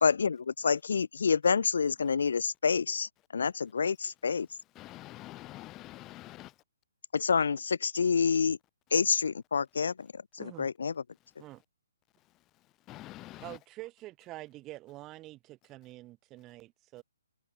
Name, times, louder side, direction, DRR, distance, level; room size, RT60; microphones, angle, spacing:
voice 1, 0.0-4.5 7.1-8.6 8.9-10.9, left 5 dB, 60° left, 0.4 m, -28 dB
voice 2, 4.7-6.6 11.2-11.3 12.2-13.6, left 17 dB, 20° left, 4.3 m, -47 dB
voice 3, 10.4-10.7 11.4-11.6 13.4-17.0, right 17 dB, 20° right, 4.2 m, -46 dB
figure-of-eight pair, 130°, 0 cm